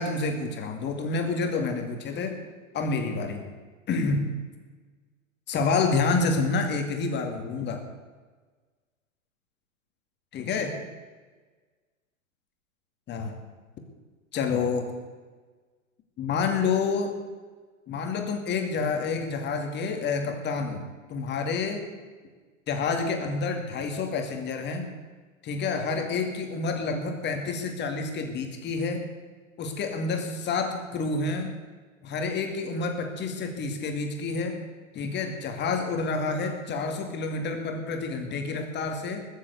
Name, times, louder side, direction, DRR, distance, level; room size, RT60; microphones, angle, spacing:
voice 1, 0.0-2.4 2.7-3.4 3.9-4.3 5.5-7.8 10.3-10.8 13.1-13.3 14.3-14.9 16.2-17.2 17.9-20.8 21.1-21.9 22.7-24.9 25.4-29.1 29.6-31.5 32.0-34.6 34.9-39.3, left 4 dB, 25° left, 4 dB, 2.5 m, -28 dB
20.5 x 7.8 x 8.1 m, 1.4 s
figure-of-eight pair, 100°, 41 cm